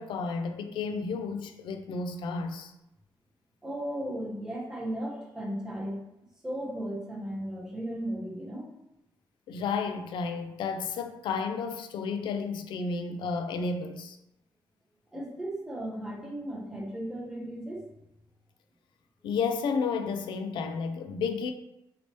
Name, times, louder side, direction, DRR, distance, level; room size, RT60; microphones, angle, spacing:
voice 1, 0.0-2.7 9.5-14.2 19.2-21.5, left 5 dB, 70° left, 0.3 m, -32 dB
voice 2, 3.6-6.0 6.4-8.7 15.1-17.8, right 1 dB, 5° right, 0.6 m, -35 dB
3.0 x 2.9 x 2.9 m
cardioid pair, 175°, 8 cm